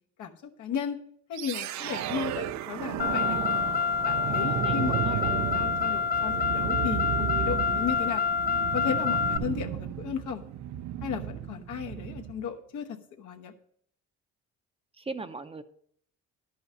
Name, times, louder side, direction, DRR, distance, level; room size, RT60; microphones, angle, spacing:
voice 1, 0.6-1.0 1.3-3.4 4.0-8.2 8.7-10.4 11.0-13.5, left 7 dB, 80° left, 3 dB, 1.1 m, -35 dB
sound 1, 1.3-12.5, right 11 dB, 65° right, 0.5 m, -33 dB
Car, 3.0-9.4, left 6 dB, 30° left, 0.5 m, -27 dB
voice 2, 4.3-5.3 15.0-15.6, right 3 dB, 20° right, 10 dB, 0.6 m, -39 dB
11.0 x 5.6 x 5.3 m, 0.65 s
cardioid pair, 90°, 30 cm